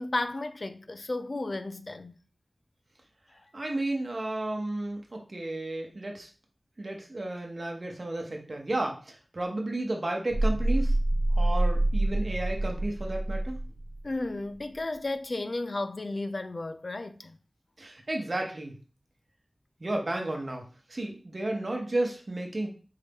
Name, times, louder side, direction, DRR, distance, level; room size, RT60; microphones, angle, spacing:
voice 1, 0.0-2.2 14.0-17.4, left 2 dB, 60° left, 0.3 m, -33 dB
voice 2, 3.5-6.3 6.8-11.0 11.3-13.6 17.8-18.7 19.8-22.7, right 2 dB, 55° right, 1.0 m, -32 dB
sound 1, 10.3-14.0, right 1 dB, 20° right, 0.8 m, -26 dB
4.7 x 2.7 x 3.5 m
wide cardioid pair, 60°, 0 cm